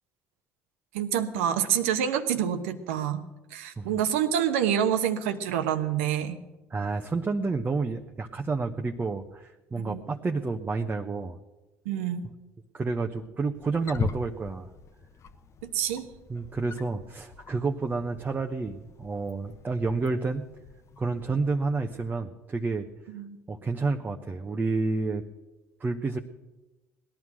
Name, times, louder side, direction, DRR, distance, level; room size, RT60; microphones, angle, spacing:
voice 1, 0.9-3.2 3.5-6.4 9.8-10.0 11.8-12.2 15.6-16.1 23.1-23.4, right 9 dB, 80° right, 9 dB, 1.0 m, -27 dB
voice 2, 6.7-11.4 12.7-14.7 16.3-20.5 21.0-22.9 23.5-25.2 25.8-26.2, right 3 dB, 25° right, 4 dB, 0.9 m, -30 dB
Wild animals, 13.5-22.1, left 6 dB, 45° left, 1.0 m, -41 dB
18.0 x 11.0 x 6.1 m, 1.1 s
hypercardioid pair, 65°, 7 cm